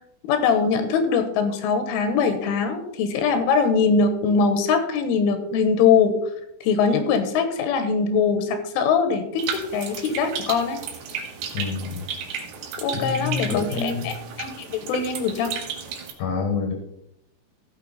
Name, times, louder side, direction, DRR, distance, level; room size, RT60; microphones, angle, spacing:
voice 1, 0.3-6.2 6.6-10.8 12.8-15.5, left 5 dB, 85° left, 8 dB, 3.7 m, -22 dB
sound 1, 9.4-16.1, right 7 dB, 70° right, 3.5 m, -34 dB
voice 2, 11.5-12.1 12.9-14.1 16.2-16.7, left 5 dB, 65° left, 3 dB, 2.6 m, -27 dB
16.0 x 6.5 x 4.1 m, 0.79 s
omnidirectional pair, 5.5 m